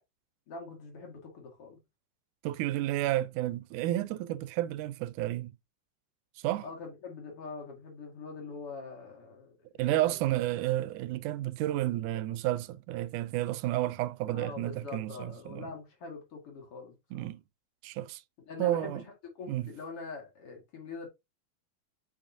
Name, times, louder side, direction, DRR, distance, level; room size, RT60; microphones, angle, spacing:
voice 1, 0.5-1.8 6.6-9.5 9.9-10.3 14.3-17.3 18.5-21.1, left 4 dB, 50° left, 2.6 m, -43 dB
voice 2, 2.4-5.5 6.4-6.7 9.8-15.7 17.1-17.4 17.8-18.2 18.6-19.0 19.5-19.7, right 15 dB, 85° right, 2.0 m, -31 dB
7.1 x 5.0 x 2.6 m
omnidirectional pair, 3.6 m